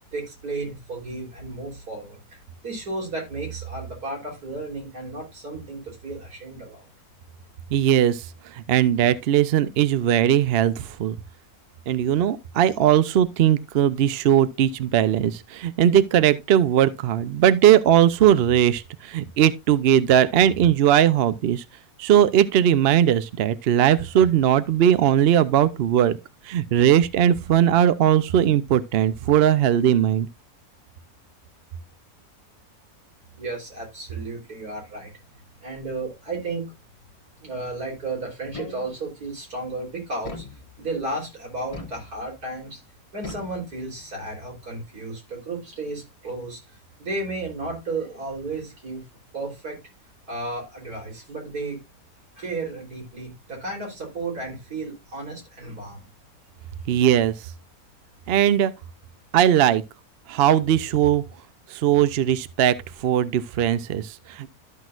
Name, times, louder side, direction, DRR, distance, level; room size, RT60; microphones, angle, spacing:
voice 1, 0.1-6.9 33.4-35.1 35.6-36.7 37.4-40.4 40.8-42.8 43.1-49.0 49.3-49.8 50.3-51.8 52.4-56.1, right 2 dB, 80° right, 4.1 m, -33 dB
voice 2, 7.7-8.3 8.5-11.2 11.9-21.6 22.0-26.2 26.4-30.3 56.9-57.3 58.3-58.7 59.3-59.8 60.3-61.2 61.7-64.5, right 10 dB, 60° right, 0.6 m, -19 dB
sound 1, 38.5-39.2 40.2-41.1 41.7-42.5 43.2-44.2, left 3 dB, 25° left, 1.1 m, -41 dB
13.0 x 6.1 x 2.4 m
omnidirectional pair, 1.6 m